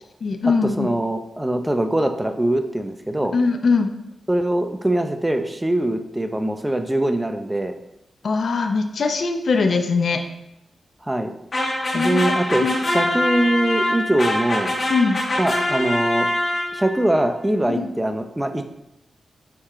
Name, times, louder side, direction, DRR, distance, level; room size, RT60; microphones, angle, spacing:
voice 1, 0.2-0.9 3.3-3.9 8.2-10.2 11.9-12.2 12.6-12.8 14.9-15.2 17.7-17.9, left 4 dB, 65° left, 5 dB, 0.6 m, -21 dB
voice 2, 0.8-3.4 4.3-7.7 11.1-11.3 11.9-12.7 12.9-14.8 15.4-16.3 16.7-18.6, right 1 dB, 10° right, 7 dB, 0.6 m, -22 dB
sound 1, 11.5-17.0, left 1 dB, 40° left, 1.3 m, -24 dB
6.8 x 4.3 x 3.7 m, 0.86 s
cardioid pair, 75°, 0 cm